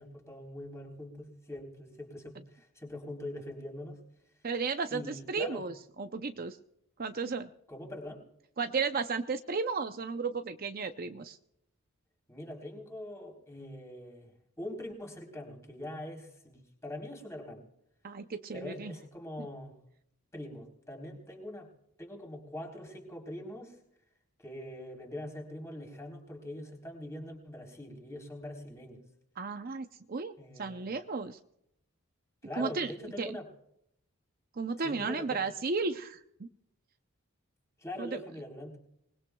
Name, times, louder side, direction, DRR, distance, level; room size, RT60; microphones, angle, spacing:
voice 1, 0.0-4.0 4.9-5.6 7.7-8.2 12.3-17.6 18.5-19.8 20.3-21.7 22.0-23.8 24.4-29.0 30.4-30.9 32.4-33.5 34.8-35.4 37.8-38.8, left 1 dB, 15° left, 0 dB, 3.6 m, -43 dB
voice 2, 4.4-6.6 7.0-7.5 8.6-11.4 18.0-18.9 29.4-31.4 32.5-32.9 33.2-33.4 34.5-36.5 38.0-38.2, right 4 dB, 40° right, 8 dB, 0.6 m, -34 dB
25.5 x 20.5 x 2.3 m, 0.76 s
head